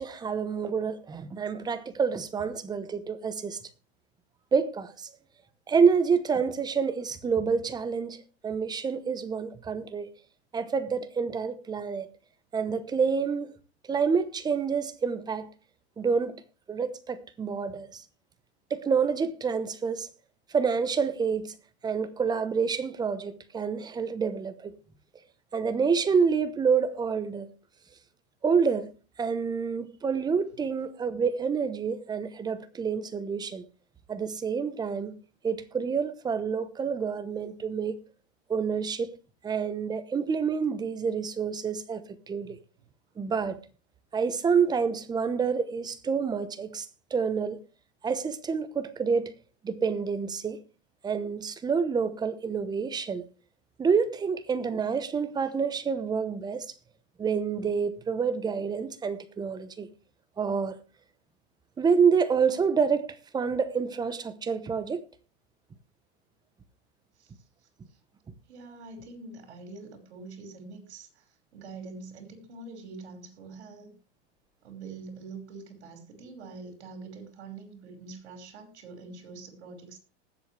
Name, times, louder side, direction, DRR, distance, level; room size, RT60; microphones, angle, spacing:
voice 1, 0.0-3.6 4.5-5.1 5.7-10.1 10.5-12.1 12.5-13.5 13.9-15.5 16.0-16.4 16.7-18.0 18.7-20.1 20.5-21.5 21.8-24.7 25.5-27.5 28.4-28.9 29.2-33.6 34.1-35.2 35.4-38.0 38.5-39.1 39.4-42.6 43.2-43.6 44.1-46.9 47.1-47.6 48.0-49.3 49.6-50.6 51.0-53.3 53.8-56.7 57.2-59.9 60.4-60.8 61.8-65.0, right 6 dB, 10° right, 0.9 m, -28 dB
voice 2, 68.5-71.3 71.5-73.9 74.6-80.0, right 3 dB, 75° right, 5.2 m, -44 dB
20.0 x 7.7 x 3.3 m
supercardioid pair, 140°, 33 cm